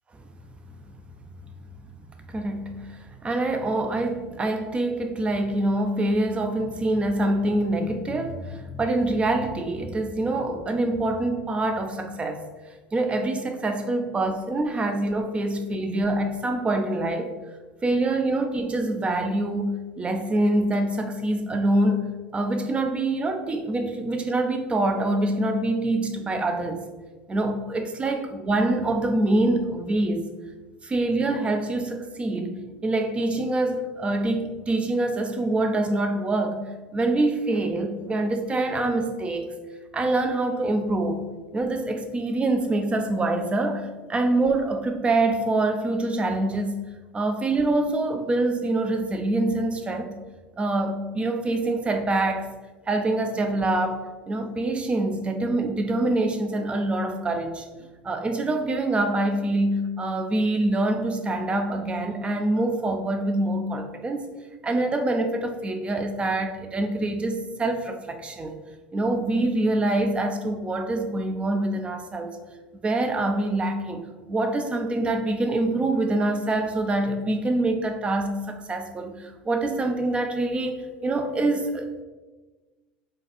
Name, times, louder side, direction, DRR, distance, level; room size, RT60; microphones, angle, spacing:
voice 1, 2.3-12.4 12.9-17.3 17.8-22.0 22.3-26.8 27.3-30.2 30.8-36.6 36.9-39.5 39.9-41.2 41.5-46.7 47.1-50.1 50.6-52.5 52.9-54.0 54.3-57.7 58.0-64.3 64.6-68.5 68.9-72.4 72.8-81.9, right 2 dB, 20° right, 6 dB, 0.6 m, -25 dB
5.0 x 2.5 x 4.2 m, 1.3 s
hypercardioid pair, 75°, 5 cm